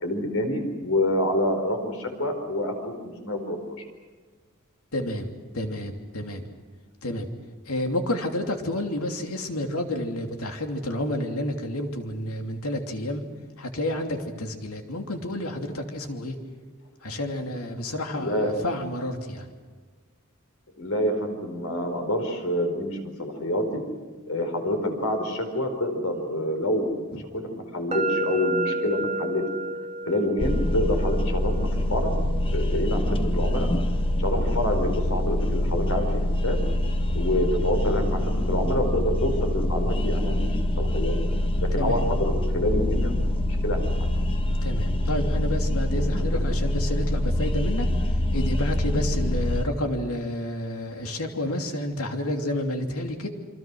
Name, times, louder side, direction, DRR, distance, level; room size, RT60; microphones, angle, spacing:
voice 1, 0.0-2.9 3.2-3.8 18.1-18.5 20.8-23.8 24.3-26.9 27.3-29.4 30.0-32.1 32.5-33.7 34.2-36.6 37.1-41.1 41.7-43.8 45.9-46.4, left 1 dB, 70° left, 5 dB, 4.8 m, -27 dB
voice 2, 4.9-6.5 7.0-7.3 7.6-13.2 13.6-16.4 17.0-19.5 27.1-27.2 41.7-42.0 44.6-53.3, left 1 dB, 90° left, 4 dB, 2.9 m, -30 dB
sound 1, 27.9-35.8, right 2 dB, 30° right, 1.5 m, -33 dB
sound 2, 30.4-49.6, left 1 dB, 25° left, 1.2 m, -25 dB
28.0 x 25.0 x 6.3 m, 1.4 s
head